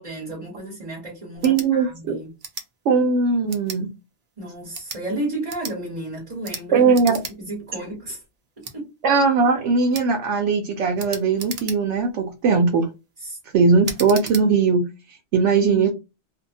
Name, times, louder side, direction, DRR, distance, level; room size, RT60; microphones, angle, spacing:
voice 1, 0.0-2.3 4.4-7.1 7.4-8.2 8.7-8.9 13.2-13.4 15.7-15.8, right 1 dB, 30° right, 1.2 m, -32 dB
Mouse Click, 1.4-1.7 2.4-2.7 3.5-3.8 4.6-5.0 5.5-5.8 6.4-6.6 6.9-7.4 7.7-7.8 8.6-8.8 9.9-10.1 11.0-12.0 12.6-12.9 13.8-14.5, right 5 dB, 50° right, 0.5 m, -35 dB
voice 2, 1.4-2.2 2.9-3.9 6.7-7.2 9.0-12.9 13.5-15.9, right 4 dB, 85° right, 0.9 m, -19 dB
2.7 x 2.1 x 2.6 m
omnidirectional pair, 1.2 m